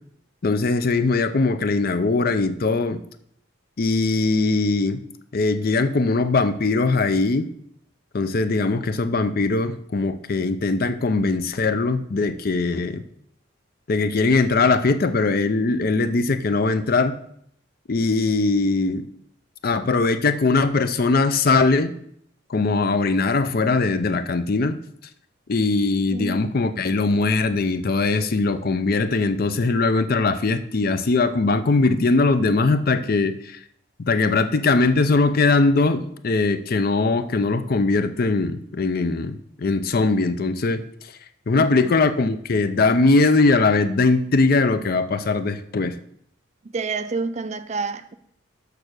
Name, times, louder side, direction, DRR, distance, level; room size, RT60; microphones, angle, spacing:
voice 1, 0.4-3.0 3.8-5.0 5.3-7.5 8.1-13.0 13.9-17.2 17.9-19.1 19.6-21.9 22.5-24.8 25.5-33.6 34.1-40.8 41.5-46.0, left 3 dB, 45° left, 0.5 m, -21 dB
voice 2, 26.1-26.4 41.5-41.9 46.6-48.1, right 4 dB, 35° right, 0.4 m, -29 dB
6.7 x 6.0 x 6.5 m
head